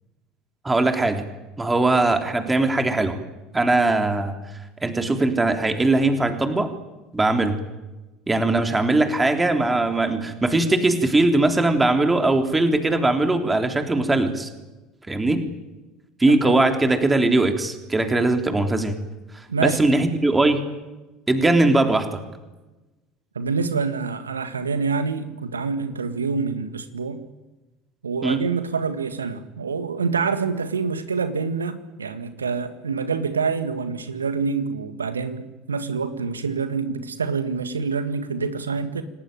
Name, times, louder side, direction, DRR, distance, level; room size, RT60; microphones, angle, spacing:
voice 1, 0.6-1.2 1.6-3.2 3.5-6.7 7.1-7.6 8.3-14.5 15.1-15.4 16.2-19.0 19.3-20.6 21.3-22.2 28.2-28.5, right 2 dB, 15° right, 6 dB, 3.5 m, -20 dB
voice 2, 23.3-27.2 28.0-39.0, right 5 dB, 80° right, 11 dB, 1.7 m, -26 dB
28.5 x 19.0 x 9.1 m, 1.1 s
figure-of-eight pair, 65°, 0 cm